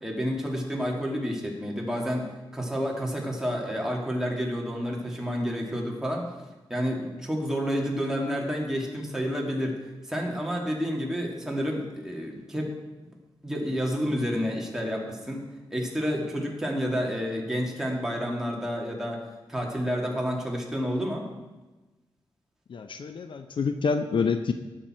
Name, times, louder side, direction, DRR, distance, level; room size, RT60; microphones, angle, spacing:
voice 1, 0.0-6.2 6.7-9.8 10.1-12.7 13.4-19.2 19.5-21.3, equal, 5° right, -2 dB, 2.5 m, -29 dB
voice 2, 22.7-24.5, left 5 dB, 65° left, 8 dB, 0.7 m, -27 dB
18.5 x 6.9 x 4.5 m, 1.2 s
wide cardioid pair, 115°, 9 cm